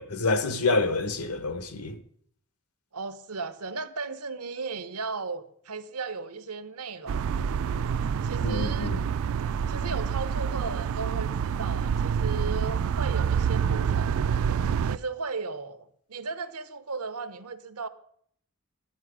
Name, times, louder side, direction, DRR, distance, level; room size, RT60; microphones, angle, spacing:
voice 1, 0.0-2.0 8.4-9.0, left 3 dB, 80° left, 1.1 m, -27 dB
voice 2, 2.9-7.2 8.2-8.9 9.7-14.3 14.8-17.9, right 4 dB, 85° right, 0.9 m, -36 dB
sound 1, 7.1-15.0, right 7 dB, 65° right, 0.3 m, -27 dB
10.5 x 9.5 x 4.9 m
head